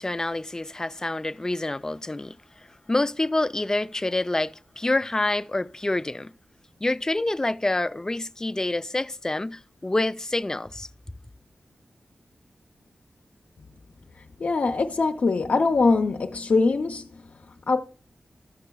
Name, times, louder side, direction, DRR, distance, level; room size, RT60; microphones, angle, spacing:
voice 1, 0.0-6.3 6.8-10.9, left 2 dB, 20° left, 0.3 m, -27 dB
voice 2, 14.4-17.1 17.7-17.8, left 3 dB, 65° left, 0.6 m, -22 dB
13.5 x 6.6 x 2.3 m
wide cardioid pair, 80°, 3 cm